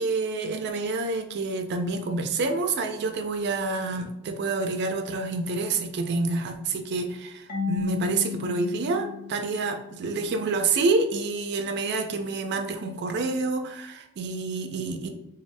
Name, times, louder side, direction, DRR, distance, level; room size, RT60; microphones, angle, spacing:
voice 1, 0.0-15.1, right 3 dB, 50° right, 6 dB, 0.3 m, -28 dB
Marimba xylophone / Wood, 7.5-10.2, left 7 dB, 45° left, 0.6 m, -34 dB
3.2 x 2.3 x 2.6 m, 0.85 s
head